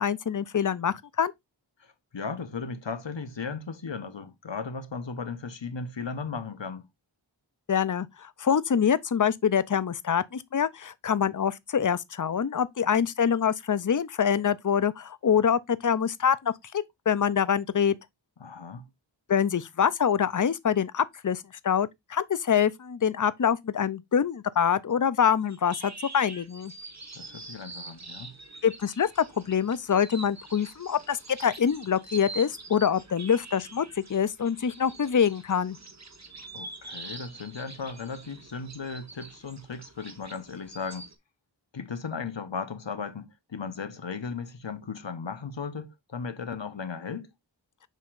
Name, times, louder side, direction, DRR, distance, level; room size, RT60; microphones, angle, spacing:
voice 1, 0.0-1.3 7.7-17.9 19.3-26.7 28.6-35.8, left 7 dB, 45° left, 0.6 m, -25 dB
voice 2, 1.8-6.9 18.4-18.9 27.2-28.4 36.5-41.1 41.7-47.3, left 5 dB, 70° left, 1.2 m, -36 dB
sound 1, 25.4-41.1, right 3 dB, 35° right, 1.4 m, -45 dB
7.4 x 5.6 x 2.6 m
wide cardioid pair, 45°, 46 cm